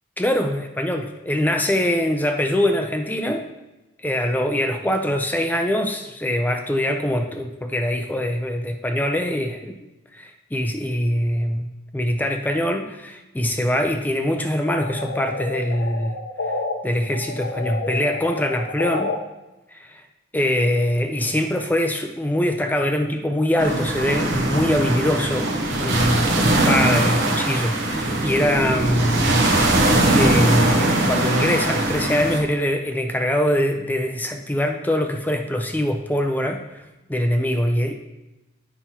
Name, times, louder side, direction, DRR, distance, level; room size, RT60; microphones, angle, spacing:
voice 1, 0.2-3.5 4.0-9.8 10.1-16.2 16.8-19.1 19.7-20.0 20.3-29.4 30.2-36.8 37.1-37.9, left 1 dB, 10° left, 5 dB, 0.4 m, -23 dB
sound 1, 14.7-16.7 17.1-19.2, left 3 dB, 65° left, 0.7 m, -29 dB
sound 2, 23.6-32.4, right 1 dB, 65° right, 0.9 m, -20 dB
8.9 x 5.6 x 2.8 m, 1.0 s
head